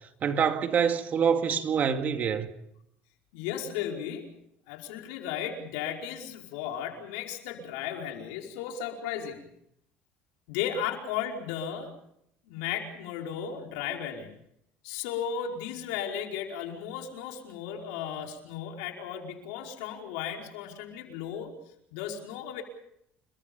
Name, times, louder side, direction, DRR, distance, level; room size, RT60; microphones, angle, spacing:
voice 1, 0.2-2.5, right 7 dB, 40° right, 2.2 m, -26 dB
voice 2, 3.3-9.4 10.5-12.0 12.5-14.3 14.8-21.5 21.9-22.6, left 8 dB, 90° left, 5.0 m, -35 dB
29.5 x 22.5 x 5.4 m
cardioid pair, 115°, 4 cm